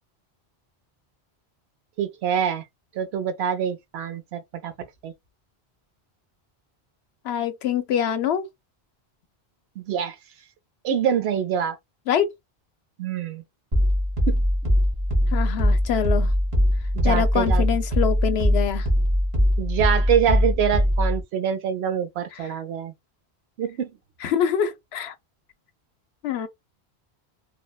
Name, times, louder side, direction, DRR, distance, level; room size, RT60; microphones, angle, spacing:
voice 1, 2.0-2.6 2.9-4.7 5.0-5.1 9.8-10.2 10.8-11.8 13.0-13.4 14.3-14.4 16.9-17.6 19.6-22.9 23.6-23.9, right 8 dB, 75° right, 0.8 m, -25 dB
voice 2, 7.2-8.5 12.1-12.3 15.3-16.3 17.0-18.9 22.4-22.5 24.2-25.1 26.2-26.5, left 8 dB, 75° left, 0.8 m, -25 dB
sound 1, 13.7-21.2, equal, 30° right, 0.9 m, -21 dB
3.1 x 2.1 x 2.2 m
omnidirectional pair, 1.1 m